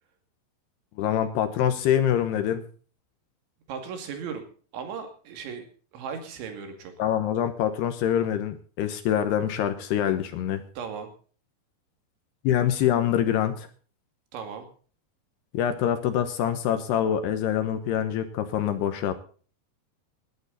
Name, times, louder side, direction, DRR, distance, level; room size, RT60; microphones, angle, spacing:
voice 1, 1.0-2.6 7.0-10.6 12.4-13.7 15.5-19.1, left 10 dB, 70° left, 9 dB, 2.8 m, -25 dB
voice 2, 3.7-4.5 4.7-5.7 5.9-6.9 10.8-11.1 14.3-14.7, right 6 dB, 75° right, 6 dB, 4.7 m, -36 dB
20.0 x 11.5 x 4.1 m, 0.41 s
omnidirectional pair, 5.4 m